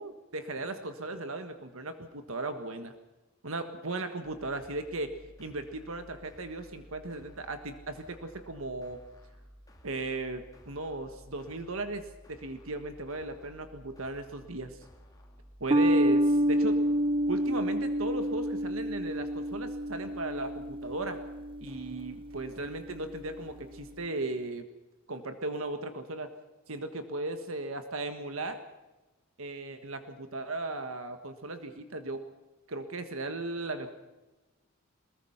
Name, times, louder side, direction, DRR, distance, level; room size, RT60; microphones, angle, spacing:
voice 1, 0.0-2.9 3.4-5.1 5.4-9.0 9.8-14.8 15.6-16.8 17.3-21.2 21.6-24.7 25.1-26.3 26.7-28.6 29.4-32.2 32.7-33.9, right 2 dB, 70° right, 8 dB, 1.5 m, -36 dB
sound 1, 4.2-24.0, equal, 15° left, 3.2 m, -55 dB
sound 2, 15.7-22.4, equal, 25° right, 0.7 m, -28 dB
23.0 x 21.0 x 5.8 m, 1.1 s
head